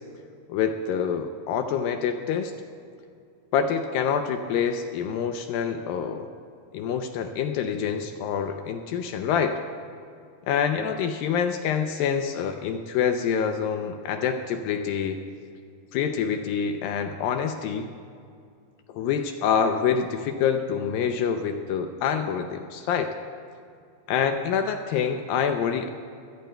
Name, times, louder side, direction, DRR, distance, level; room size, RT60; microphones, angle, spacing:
voice 1, 0.5-2.5 3.5-6.3 6.7-9.6 10.5-15.2 15.9-17.9 18.9-23.1 24.1-25.9, left 7 dB, 80° left, 6 dB, 2.2 m, -26 dB
25.0 x 17.5 x 2.2 m, 2.4 s
omnidirectional pair, 4.6 m